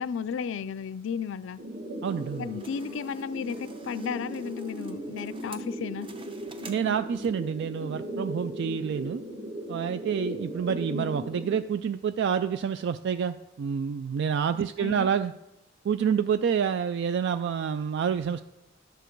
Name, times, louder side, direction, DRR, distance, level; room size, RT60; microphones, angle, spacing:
voice 1, 0.0-1.6 2.4-6.1 14.5-15.1, left 6 dB, 65° left, 0.4 m, -34 dB
sound 1, 1.6-11.6, right 1 dB, 40° right, 1.4 m, -38 dB
sound 2, 2.0-7.5, right 3 dB, 25° right, 0.8 m, -51 dB
voice 2, 2.0-2.5 6.7-9.2 9.7-15.3 15.8-18.4, right 7 dB, 60° right, 0.3 m, -28 dB
11.5 x 6.7 x 4.5 m
head